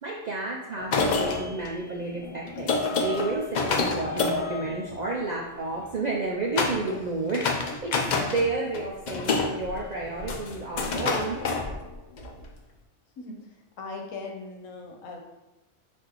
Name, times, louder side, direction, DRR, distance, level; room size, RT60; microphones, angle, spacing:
voice 1, 0.0-11.4, right 3 dB, 65° right, -2 dB, 0.4 m, -31 dB
sound 1, 0.8-5.5 6.6-7.0 7.3-8.5 8.7-12.3, left 4 dB, 65° left, 0.4 m, -28 dB
voice 2, 13.8-15.2, left 3 dB, 90° left, 2 dB, 1.2 m, -38 dB
5.9 x 2.6 x 2.9 m, 0.99 s
omnidirectional pair, 1.3 m